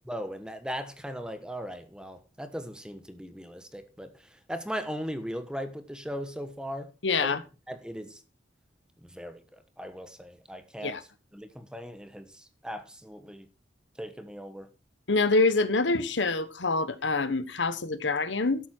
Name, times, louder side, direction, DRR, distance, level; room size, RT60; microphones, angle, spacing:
voice 1, 0.0-6.9 7.2-7.3 7.7-8.2 9.0-11.0 11.3-13.5 14.0-14.7, equal, 5° right, 1.3 m, -38 dB
voice 2, 7.0-7.4 10.8-11.0 15.1-18.6, left 3 dB, 80° left, 1.2 m, -26 dB
12.5 x 8.5 x 4.5 m
head